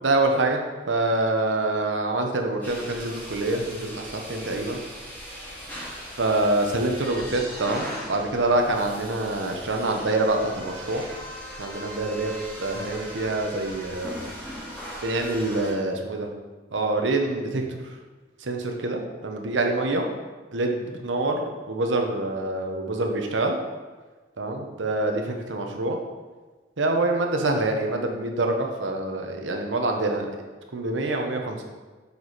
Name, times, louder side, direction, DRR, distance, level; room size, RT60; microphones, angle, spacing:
voice 1, 0.0-0.6 0.9-4.8 6.2-11.0 11.6-12.3 12.6-14.2 15.0-16.3 16.7-17.8 18.4-20.1 20.5-23.6 24.4-26.0 26.8-30.3 30.7-31.6, right 2 dB, 85° right, 3 dB, 0.9 m, -26 dB
sound 1, 2.6-15.7, equal, 10° left, 1.5 m, -39 dB
6.9 x 4.7 x 4.1 m, 1.3 s
head